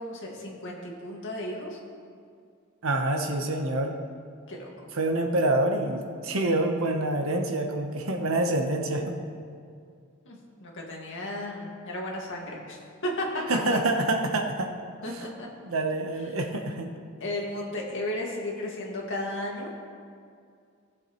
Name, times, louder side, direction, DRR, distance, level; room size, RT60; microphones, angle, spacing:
voice 1, 0.0-1.8 4.5-4.9 10.3-13.4 15.0-15.5 17.2-19.7, left 1 dB, 65° left, -2 dB, 1.9 m, -34 dB
voice 2, 2.8-3.9 4.9-9.2 13.5-14.7 15.6-16.9, right 2 dB, 70° right, 3 dB, 1.0 m, -26 dB
17.0 x 7.6 x 3.1 m, 2.3 s
head